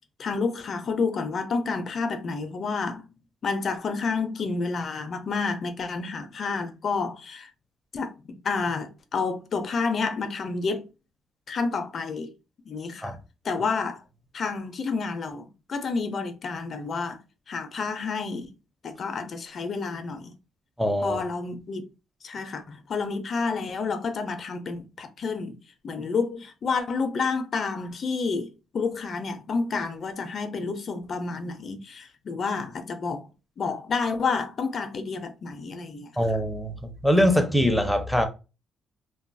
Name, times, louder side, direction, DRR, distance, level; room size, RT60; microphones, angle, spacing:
voice 1, 0.2-7.5 7.9-10.9 11.5-12.3 12.7-13.2 13.4-14.0 14.3-17.2 17.5-18.5 18.8-20.3 21.0-21.9 22.2-25.6 25.8-33.3 33.6-36.1, left 4 dB, 50° left, 0.5 m, -29 dB
voice 2, 20.8-21.2 36.2-38.3, equal, ahead, 0.6 m, -23 dB
2.6 x 2.3 x 2.5 m
cardioid pair, 90°, 0 cm